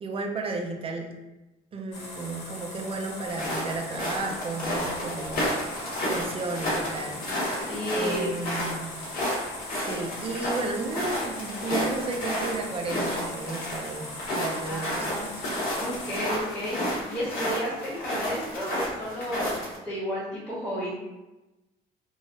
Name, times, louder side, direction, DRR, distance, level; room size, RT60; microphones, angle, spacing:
voice 1, 0.0-1.1 1.7-5.4 6.0-7.2 7.9-9.0 9.7-14.1 14.3-15.2, right 3 dB, 35° right, 2 dB, 0.5 m, -33 dB
sound 1, 1.9-16.2, left 2 dB, 80° left, 1.0 m, -41 dB
sound 2, 3.3-19.8, equal, 60° left, 1.2 m, -31 dB
voice 2, 7.5-8.6 14.6-15.3 15.7-20.9, equal, 5° left, -11 dB, 1.1 m, -32 dB
3.1 x 2.3 x 2.6 m, 1.0 s
cardioid pair, 110°, 17 cm